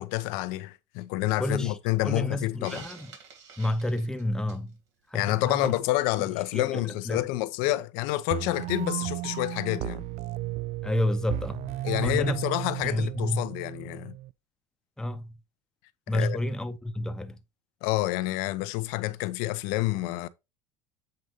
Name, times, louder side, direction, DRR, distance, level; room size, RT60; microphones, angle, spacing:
voice 1, 0.0-2.8 5.1-10.1 11.8-14.1 16.1-16.4 17.8-20.3, left 17 dB, 70° left, 0.7 m, -28 dB
voice 2, 1.4-1.8 2.0-3.1 3.6-4.7 5.1-5.7 6.2-6.3 6.5-7.2 10.8-11.8 12.0-12.4 12.8-13.5 15.0-15.3 16.1-17.4, left 1 dB, 5° left, 0.8 m, -30 dB
Hiss, 2.6-4.7, right 6 dB, 90° right, 2.6 m, -47 dB
sound 1, 8.3-14.3, right 16 dB, 50° right, 0.4 m, -34 dB
7.8 x 2.6 x 5.0 m
supercardioid pair, 100°, 15 cm